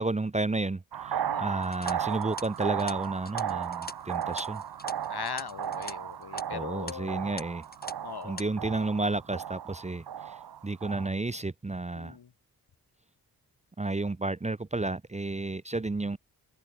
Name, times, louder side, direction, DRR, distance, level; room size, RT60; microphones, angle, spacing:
voice 1, 0.0-4.6 6.5-7.6 8.2-10.4 10.6-12.2 13.8-16.2, right 2 dB, 20° right, 0.7 m, -32 dB
sound 1, 0.9-11.1, right 9 dB, 75° right, 1.1 m, -35 dB
sound 2, 1.6-5.9 6.2-6.4 6.9-7.0 7.4-7.9 8.2-8.4, left 2 dB, 25° left, 3.5 m, -43 dB
voice 2, 5.1-7.2 8.0-8.4 11.9-12.3, left 7 dB, 80° left, 4.6 m, -40 dB
cardioid pair, 65°, 38 cm